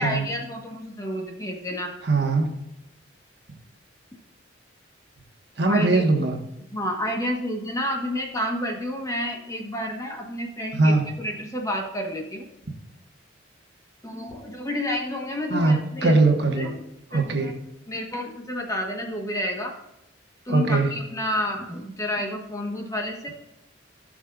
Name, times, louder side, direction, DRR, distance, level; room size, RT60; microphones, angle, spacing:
voice 1, 0.0-1.9 5.6-6.1 6.7-12.5 14.0-16.2 16.6-16.8 17.1-17.6 17.9-19.7 20.4-23.3, left 1 dB, 15° left, 1 dB, 1.3 m, -30 dB
voice 2, 2.0-2.5 5.6-6.4 10.7-11.0 15.5-16.7 17.1-17.5 20.5-20.9, right 3 dB, 60° right, 3 dB, 1.4 m, -21 dB
15.5 x 6.4 x 2.5 m, 0.88 s
head